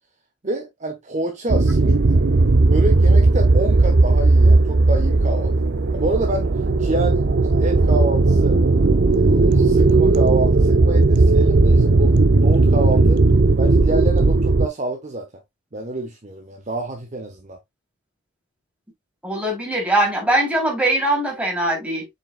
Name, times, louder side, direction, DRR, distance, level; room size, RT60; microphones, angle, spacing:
voice 1, 0.4-2.0 2.6-5.5 5.9-6.5 6.8-7.2 7.5-8.6 9.0-13.2 13.6-15.3 15.7-17.6, right 2 dB, 40° right, 1.1 m, -27 dB
sound 1, 1.5-14.7, right 3 dB, 60° right, 0.6 m, -16 dB
voice 2, 19.2-22.1, right 1 dB, 5° right, 3.3 m, -21 dB
7.3 x 5.6 x 2.3 m
head